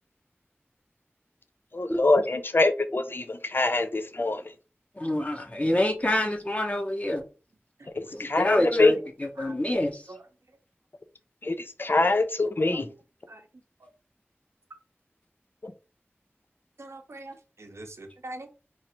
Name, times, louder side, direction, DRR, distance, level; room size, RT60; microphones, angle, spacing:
voice 1, 1.7-4.4 8.0-8.9 11.4-12.9, left 2 dB, 50° left, 9 dB, 0.5 m, -24 dB
voice 2, 5.0-7.2 8.1-10.0, left 1 dB, 30° left, 3 dB, 0.9 m, -27 dB
voice 3, 16.8-18.5, right 2 dB, 80° right, 4 dB, 0.7 m, -43 dB
3.1 x 2.5 x 4.3 m, 0.32 s
wide cardioid pair, 50°, 5 cm